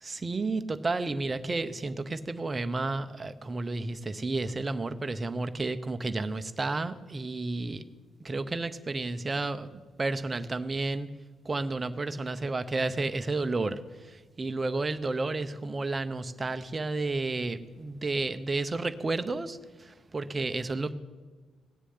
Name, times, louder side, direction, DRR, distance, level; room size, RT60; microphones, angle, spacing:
voice 1, 0.0-7.8 8.2-11.1 11.4-20.9, right 3 dB, 20° right, 10 dB, 0.7 m, -31 dB
17.0 x 6.9 x 9.4 m, 1.4 s
cardioid pair, 175°, 0 cm